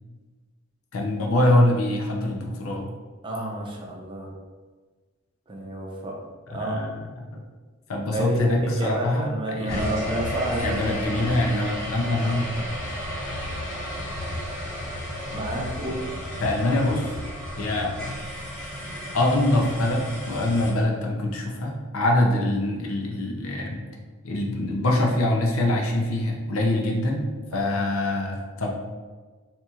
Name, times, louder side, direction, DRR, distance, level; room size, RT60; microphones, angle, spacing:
voice 1, 0.9-2.9 6.5-7.0 7.3-7.4 7.9-9.9 10.6-12.5 16.4-17.1 17.6-17.9 19.1-23.8 24.2-27.2 27.5-28.7, left 1 dB, 80° left, 1 dB, 0.6 m, -24 dB
voice 2, 3.2-4.3 5.5-6.2 6.5-6.8 8.1-11.4 12.2-12.3 15.3-16.0 27.5-27.8, right 1 dB, 25° right, -1 dB, 0.5 m, -30 dB
sound 1, 9.7-20.7, equal, 5° left, 1.5 m, -33 dB
4.2 x 2.7 x 2.4 m, 1.4 s
head